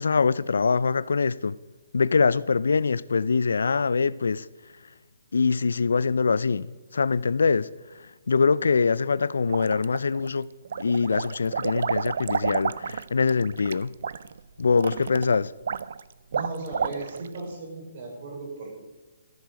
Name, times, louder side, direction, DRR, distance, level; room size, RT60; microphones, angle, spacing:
voice 1, 0.0-1.6 1.9-4.4 5.3-7.7 8.3-10.5 10.8-13.9 14.6-15.5, left 5 dB, 85° left, 0.4 m, -23 dB
sound 1, 9.5-10.3 10.7-17.4, right 7 dB, 65° right, 0.4 m, -31 dB
voice 2, 16.3-18.8, right 3 dB, 45° right, 4.2 m, -36 dB
13.5 x 6.4 x 5.1 m
hypercardioid pair, 160°, 0 cm